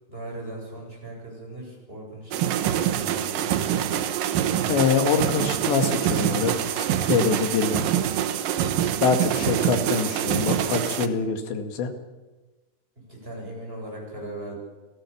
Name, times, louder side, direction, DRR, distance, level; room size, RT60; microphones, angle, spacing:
voice 1, 0.1-3.8 9.1-9.6 13.0-14.6, right 1 dB, 10° right, -1 dB, 7.7 m, -39 dB
sound 1, 2.3-11.1, right 10 dB, 70° right, 2.4 m, -25 dB
voice 2, 4.7-7.9 9.0-11.9, left 5 dB, 85° left, 6 dB, 4.3 m, -25 dB
28.5 x 18.5 x 7.2 m, 1.2 s
omnidirectional pair, 4.9 m